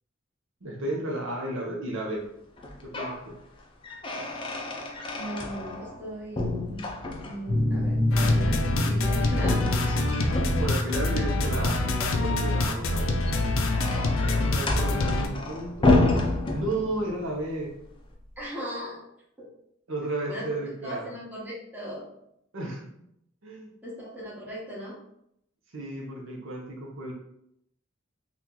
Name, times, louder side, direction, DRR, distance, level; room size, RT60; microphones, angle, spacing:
voice 1, 0.6-2.3 2.8-3.3 10.6-11.8 12.2-13.2 14.2-16.0 16.5-17.7 19.9-21.1 22.5-22.8 23.4-23.7 25.7-27.1, right 1 dB, 70° right, -1 dB, 0.7 m, -33 dB
sound 1, 2.6-3.2 3.6-6.0 6.3-7.6 9.3-11.0 13.0-17.2, left 2 dB, 25° left, 0.4 m, -29 dB
voice 2, 5.1-6.9 7.2-9.7 12.0-12.2 12.7-12.9 18.4-19.0 20.3-20.5 20.8-22.0 23.8-24.9, equal, 10° right, -7 dB, 1.0 m, -38 dB
sound 2, 7.5-16.9, left 1 dB, 50° right, 1.4 m, -30 dB
sound 3, 8.1-15.3, left 2 dB, 80° left, 0.5 m, -26 dB
2.9 x 2.4 x 3.7 m, 0.77 s
head